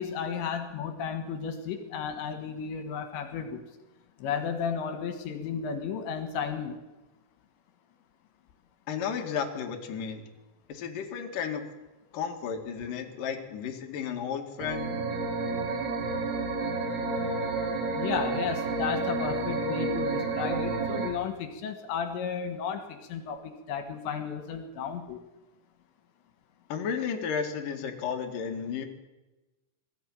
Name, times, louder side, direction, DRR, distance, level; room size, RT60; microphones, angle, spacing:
voice 1, 0.0-3.6 4.2-6.8 18.0-25.2, left 7 dB, 80° left, 7 dB, 3.8 m, -33 dB
voice 2, 8.9-10.3 10.7-11.6 12.1-14.9 26.7-28.8, left 7 dB, 55° left, 3 dB, 3.2 m, -33 dB
sound 1, 14.6-21.1, right 3 dB, 65° right, 5.6 m, -30 dB
21.0 x 15.0 x 9.0 m, 1.1 s
omnidirectional pair, 5.1 m